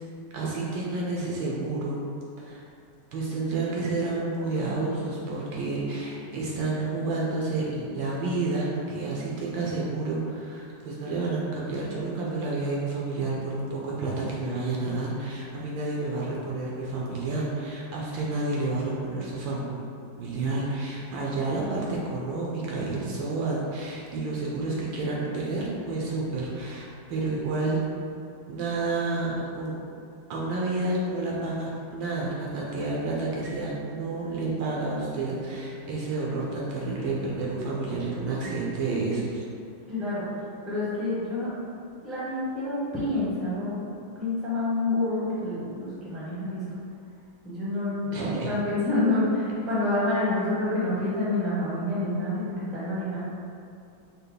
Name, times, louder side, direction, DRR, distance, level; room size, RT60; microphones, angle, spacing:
voice 1, 0.3-2.0 2.4-2.6 3.1-19.8 20.2-27.8 28.5-29.8 30.3-39.4 48.1-48.5, right 3 dB, 70° right, -4 dB, 1.3 m, -30 dB
voice 2, 39.9-40.4 40.6-41.5 42.0-46.6 47.4-53.2, left 2 dB, ahead, -9 dB, 0.7 m, -28 dB
5.4 x 2.1 x 3.9 m, 2.4 s
omnidirectional pair, 2.3 m